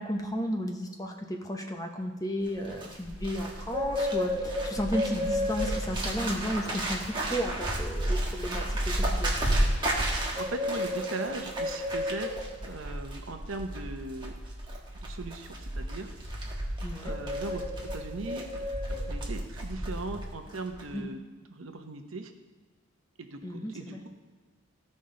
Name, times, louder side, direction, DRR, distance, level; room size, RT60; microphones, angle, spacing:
voice 1, 0.0-9.4 16.8-17.1 20.9-21.1 23.4-24.0, equal, 15° left, 2 dB, 0.8 m, -33 dB
Bird, 2.5-20.3 20.5-20.9, equal, 20° right, 1.3 m, -32 dB
voice 2, 10.3-12.3 12.6-14.3 15.0-16.1 17.0-17.6 17.9-18.5 18.9-21.2 21.5-22.3 23.2-24.1, right 3 dB, 75° right, 6 dB, 0.8 m, -39 dB
15.5 x 5.4 x 3.8 m, 1.4 s
head